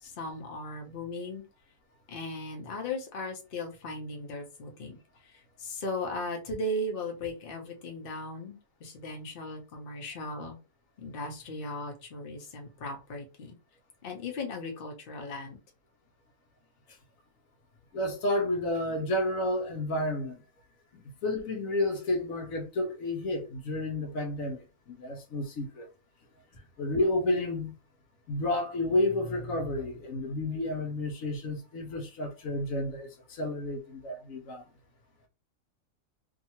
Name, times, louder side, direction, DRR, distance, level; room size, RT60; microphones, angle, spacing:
voice 1, 0.0-1.4 2.1-5.0 5.2-10.6 11.0-13.6 14.0-15.6, left 1 dB, 50° left, 0.9 m, -37 dB
voice 2, 17.9-20.4 20.9-25.9 26.5-27.7 28.3-34.6, left 1 dB, 80° left, 1.1 m, -31 dB
2.7 x 2.4 x 2.8 m
omnidirectional pair, 1.4 m